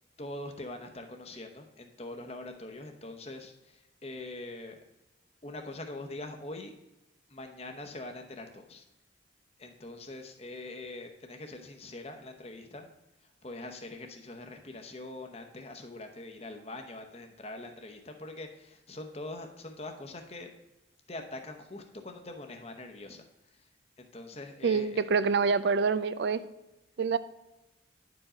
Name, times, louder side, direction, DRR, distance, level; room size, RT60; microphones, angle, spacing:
voice 1, 0.2-4.8 5.4-6.8 7.3-8.8 9.6-12.9 13.4-20.5 21.1-23.2 23.6-23.7 24.0-25.0, left 2 dB, 30° left, 4 dB, 0.9 m, -43 dB
voice 2, 24.6-26.4 27.0-27.2, right 5 dB, 60° right, 14 dB, 0.4 m, -26 dB
10.5 x 4.9 x 5.0 m, 0.99 s
head